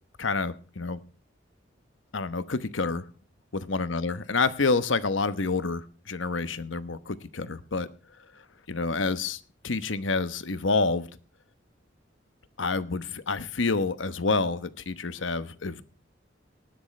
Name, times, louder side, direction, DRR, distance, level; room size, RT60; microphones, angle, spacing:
voice 1, 0.2-1.0 2.1-3.0 3.5-7.9 8.7-11.1 12.6-15.8, left 3 dB, 85° left, 13 dB, 1.0 m, -28 dB
19.5 x 10.5 x 3.3 m, 0.37 s
head